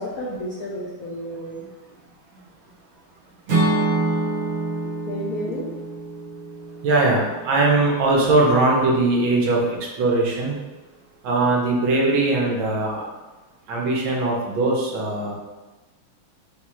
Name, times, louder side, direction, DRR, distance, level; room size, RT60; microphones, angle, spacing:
voice 1, 0.0-1.7 5.1-5.6, equal, 65° left, -5 dB, 0.9 m, -31 dB
Acoustic guitar / Strum, 3.5-7.6, right 2 dB, 45° right, 1.2 m, -26 dB
voice 2, 6.8-10.6 11.2-13.0 13.7-15.3, right 2 dB, 75° right, -2 dB, 1.7 m, -20 dB
4.4 x 2.4 x 4.3 m, 1.1 s
omnidirectional pair, 2.3 m